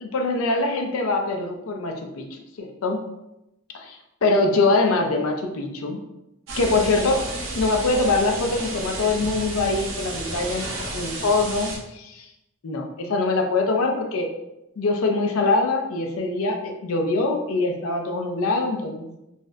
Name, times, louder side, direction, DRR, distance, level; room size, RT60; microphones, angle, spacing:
voice 1, 0.0-3.0 4.2-6.0 6.6-7.2 7.5-10.7 10.9-12.3 12.6-14.3 14.8-19.1, left 3 dB, 85° left, 3 dB, 0.5 m, -23 dB
sound 1, 6.5-11.8, right 2 dB, 65° right, 0.7 m, -32 dB
4.0 x 2.1 x 2.4 m, 0.87 s
head